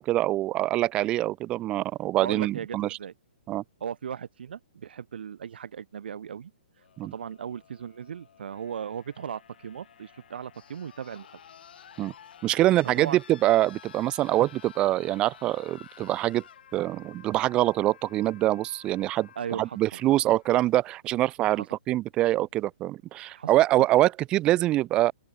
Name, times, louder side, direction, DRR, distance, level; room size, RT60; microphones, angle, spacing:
voice 1, 0.0-2.9 3.5-3.6 7.0-7.1 12.0-12.1 12.4-16.4 16.7-19.3 19.6-25.1, right 15 dB, 15° right, 0.4 m, -24 dB
voice 2, 2.2-3.1 3.8-6.5 7.1-11.3 13.0-13.2 19.4-19.8 20.1-20.2 21.5-21.7 23.3-23.9, right 8 dB, 65° right, 3.0 m, -37 dB
sound 1, 6.8-20.8 22.0-22.1, left 8 dB, 60° left, 3.2 m, -52 dB
open air
hypercardioid pair, 160°, 6 cm